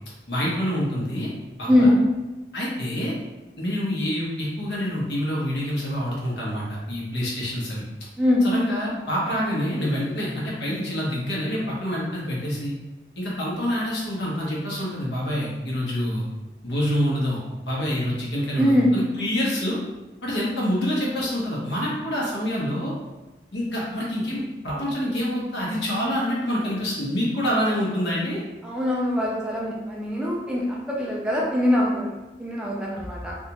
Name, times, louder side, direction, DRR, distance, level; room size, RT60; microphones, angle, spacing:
voice 1, 0.3-1.3 1.6-1.9 2.5-3.1 3.6-7.8 8.4-12.7 13.2-16.2 16.6-17.4 17.6-19.8 20.2-22.9 23.5-28.4, equal, 80° left, -5 dB, 1.0 m, -26 dB
voice 2, 1.7-2.0 8.2-8.5 18.6-18.9 28.6-32.1 32.4-33.4, left 1 dB, 5° right, -4 dB, 0.4 m, -22 dB
3.5 x 2.4 x 2.9 m, 1.1 s
head